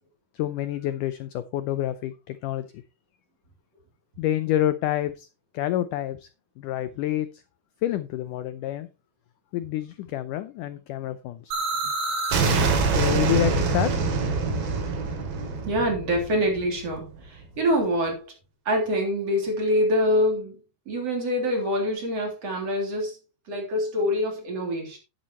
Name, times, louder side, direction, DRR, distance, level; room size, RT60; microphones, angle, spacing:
voice 1, 0.3-2.7 4.2-5.3 5.5-6.3 6.6-7.4 7.8-8.9 9.5-11.5 12.9-13.9, left 13 dB, 80° left, 1.9 m, -28 dB
sound 1, 11.5-17.2, right 4 dB, 70° right, 4.2 m, -25 dB
voice 2, 15.7-18.3 18.7-20.6 20.9-23.2 23.5-25.0, equal, 40° right, 4.2 m, -25 dB
11.5 x 10.5 x 3.0 m
omnidirectional pair, 4.4 m